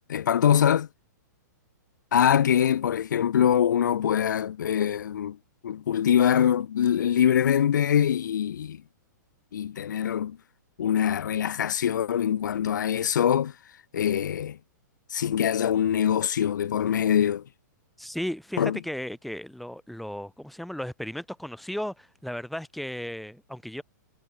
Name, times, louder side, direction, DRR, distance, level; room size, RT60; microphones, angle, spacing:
voice 1, 0.1-0.9 2.1-5.4 5.6-8.8 9.5-10.4 10.8-13.5 13.9-14.6 15.1-17.4 18.6-18.8, left 9 dB, 75° left, 2.5 m, -23 dB
voice 2, 18.0-23.8, equal, ahead, 4.6 m, -35 dB
hypercardioid pair, 160°, 10 cm